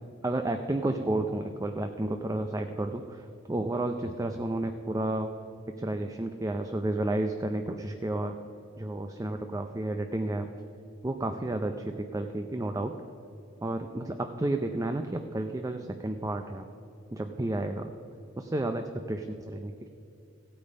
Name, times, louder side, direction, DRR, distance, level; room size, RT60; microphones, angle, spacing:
voice 1, 0.2-5.3 5.8-8.3 8.8-10.5 11.0-12.9 13.6-16.7 17.1-17.9 18.4-19.9, right 1 dB, 15° right, 6 dB, 0.5 m, -31 dB
15.5 x 8.6 x 5.4 m, 2.7 s
head